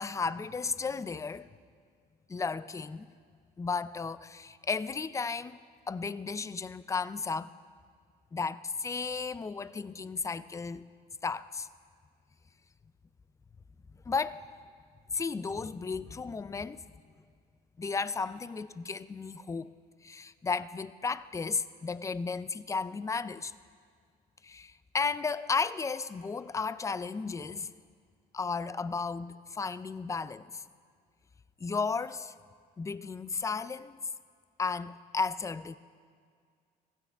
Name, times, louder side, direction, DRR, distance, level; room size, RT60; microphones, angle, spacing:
voice 1, 0.0-1.5 2.3-3.1 3.6-5.6 5.9-7.5 8.3-10.9 11.2-11.7 14.1-14.5 15.1-16.8 17.8-19.7 20.0-23.5 24.4-27.7 28.3-30.6 31.6-32.3 32.8-34.0 34.6-35.8, left 4 dB, 20° left, 0.4 m, -34 dB
25.0 x 16.0 x 3.5 m
cardioid pair, 110°, 17 cm